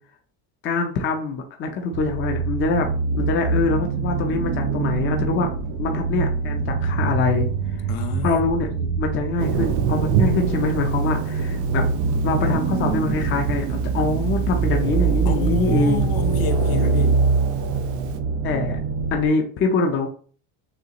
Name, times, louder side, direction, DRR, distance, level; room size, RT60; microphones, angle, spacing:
voice 1, 0.6-2.9 3.2-5.5 5.8-7.5 8.2-8.7 9.0-11.8 12.2-16.1 18.4-18.8 19.1-20.1, left 3 dB, 30° left, 0.5 m, -24 dB
sound 1, 1.9-19.3, right 5 dB, 75° right, 1.1 m, -24 dB
voice 2, 7.9-8.5 8.8-8.9 15.2-17.2, left 7 dB, 60° left, 0.8 m, -30 dB
Thunder, 9.4-18.1, right 8 dB, 45° right, 0.6 m, -29 dB
6.5 x 2.4 x 2.9 m
cardioid pair, 160°, 42 cm